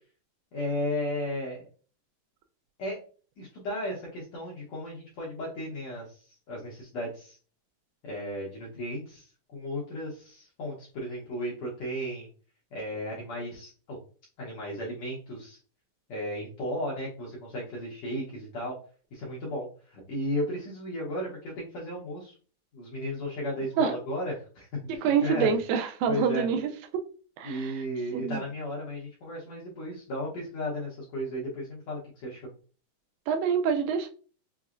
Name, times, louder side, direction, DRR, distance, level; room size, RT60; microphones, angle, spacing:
voice 1, 0.5-1.7 2.8-3.0 3.4-7.4 8.0-12.3 12.7-14.0 14.4-15.6 16.1-18.8 19.1-22.4 22.7-25.5 26.1-26.5 27.4-32.5, equal, 70° left, -4 dB, 1.6 m, -35 dB
voice 2, 24.9-26.7 27.4-27.8 28.1-28.4 33.3-34.1, right 6 dB, 85° right, 6 dB, 2.2 m, -26 dB
5.9 x 2.0 x 2.4 m, 0.39 s
omnidirectional pair, 4.1 m